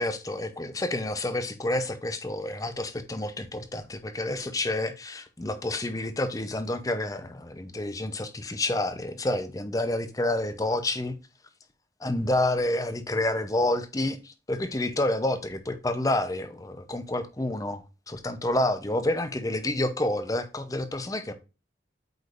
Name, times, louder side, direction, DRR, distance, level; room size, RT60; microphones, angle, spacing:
voice 1, 0.0-11.2 12.0-21.3, left 1 dB, 20° left, 0.6 m, -29 dB
8.0 x 5.0 x 2.5 m
head